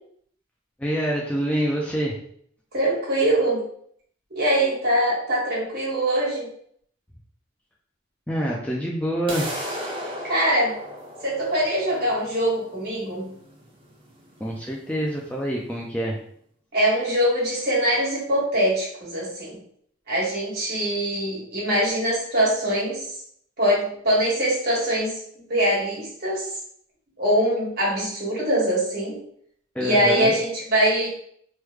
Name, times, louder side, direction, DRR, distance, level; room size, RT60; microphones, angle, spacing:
voice 1, 0.8-2.2 8.3-9.5 14.4-16.2 29.7-30.3, equal, 5° left, -2 dB, 0.3 m, -26 dB
voice 2, 2.7-3.6 4.3-6.5 10.2-10.7 11.2-13.3 16.7-19.6 20.1-23.0 23.6-25.1 25.5-26.5 27.2-29.2 29.8-31.1, right 1 dB, 55° right, -6 dB, 1.4 m, -23 dB
sound 1, 9.3-15.3, equal, 25° right, 0.7 m, -36 dB
3.1 x 2.1 x 3.4 m, 0.65 s
head